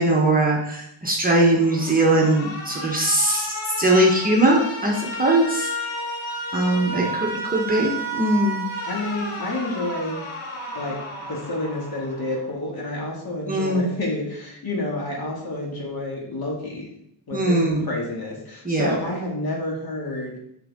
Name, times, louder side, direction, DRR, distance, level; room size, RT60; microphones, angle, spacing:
voice 1, 0.0-5.7 6.5-8.6 13.5-13.9 17.3-17.8 18.6-19.0, right 1 dB, 15° right, -2 dB, 1.2 m, -20 dB
Alarm, 1.5-12.5, equal, 70° left, 1.8 m, -32 dB
voice 2, 6.7-7.1 8.8-10.2 10.8-16.9 17.3-20.3, left 1 dB, 45° left, -2 dB, 2.4 m, -29 dB
6.7 x 6.5 x 3.7 m, 0.75 s
cardioid pair, 125°, 50 cm